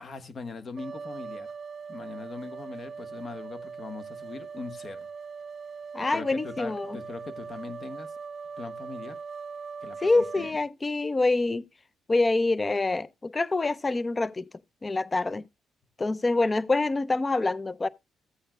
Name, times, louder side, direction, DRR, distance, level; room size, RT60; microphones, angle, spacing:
voice 1, 0.0-1.5 1.9-5.1 6.1-8.1 8.6-9.2 9.8-10.5, left 4 dB, 45° left, 1.3 m, -40 dB
sound 1, 0.8-10.5, right 5 dB, 45° right, 0.5 m, -40 dB
voice 2, 5.9-7.0 10.0-11.6 12.1-14.5 14.8-15.4 16.0-17.9, left 3 dB, 25° left, 0.5 m, -26 dB
14.5 x 8.6 x 2.2 m
cardioid pair, 90°, 0 cm